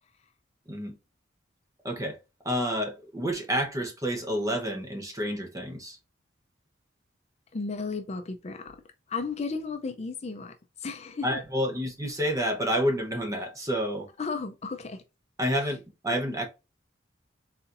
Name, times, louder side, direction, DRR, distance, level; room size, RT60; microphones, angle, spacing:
voice 1, 1.8-2.2 2.4-6.0 11.2-14.1 15.4-16.4, equal, 20° right, 0.9 m, -29 dB
voice 2, 7.5-8.8 9.1-11.3 14.2-15.0, left 4 dB, 35° left, 0.5 m, -34 dB
4.3 x 3.9 x 2.5 m
head